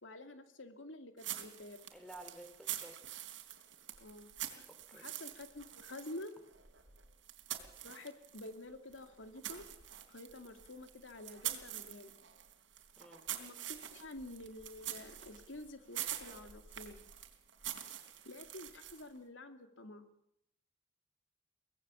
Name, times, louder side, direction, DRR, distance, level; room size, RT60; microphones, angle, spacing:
voice 1, 0.0-1.8 4.0-6.3 7.8-9.6 10.1-12.1 13.3-17.0 18.2-20.1, left 2 dB, 90° left, 8 dB, 2.6 m, -49 dB
sound 1, 1.2-8.6 8.9-19.2, right 12 dB, 80° right, 3.3 m, -46 dB
voice 2, 1.9-3.2 4.9-5.1 13.0-13.2, right 1 dB, 5° left, 7 dB, 3.4 m, -53 dB
24.5 x 19.0 x 7.2 m, 0.77 s
head